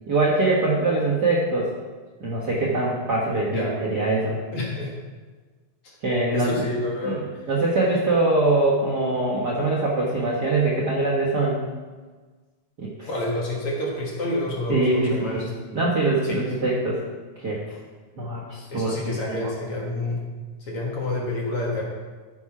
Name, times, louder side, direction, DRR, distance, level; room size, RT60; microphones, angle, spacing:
voice 1, 0.1-1.7 2.2-4.4 6.0-6.7 7.0-11.6 12.8-13.1 14.7-15.4 15.7-17.0 17.4-17.8 18.2-19.5, right 2 dB, 50° right, -5 dB, 1.3 m, -23 dB
voice 2, 4.5-4.9 5.8-5.9 6.3-7.2 12.8-15.4 16.2-16.5 18.7-20.2 20.7-21.8, left 1 dB, 50° left, -3 dB, 2.3 m, -28 dB
13.5 x 6.1 x 4.8 m, 1.4 s
omnidirectional pair, 3.5 m